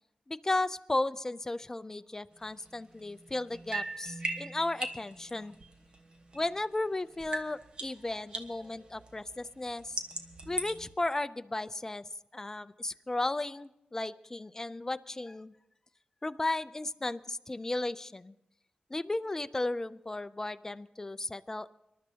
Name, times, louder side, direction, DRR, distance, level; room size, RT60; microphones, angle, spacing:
voice 1, 0.3-5.5 6.3-10.0 10.5-12.0 12.3-15.5 16.2-18.3 18.9-21.7, left 2 dB, 20° left, 12 dB, 0.5 m, -35 dB
sound 1, 2.4-6.9 7.1-10.9, right 2 dB, 40° right, 1.2 m, -40 dB
26.0 x 12.0 x 2.9 m, 0.87 s
wide cardioid pair, 110°, 3 cm